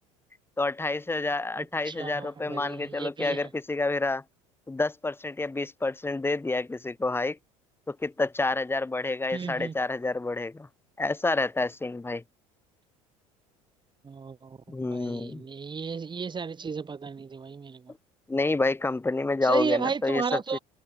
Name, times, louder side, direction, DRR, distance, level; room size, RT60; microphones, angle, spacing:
voice 1, 0.6-4.2 4.7-7.4 7.9-10.7 11.0-12.2 14.7-15.4 18.3-20.6, left 3 dB, 15° left, 2.4 m, -28 dB
voice 2, 1.6-3.5 9.3-9.8 14.0-17.9 19.4-20.6, right 5 dB, 25° right, 4.1 m, -33 dB
hypercardioid pair, 70°, 18 cm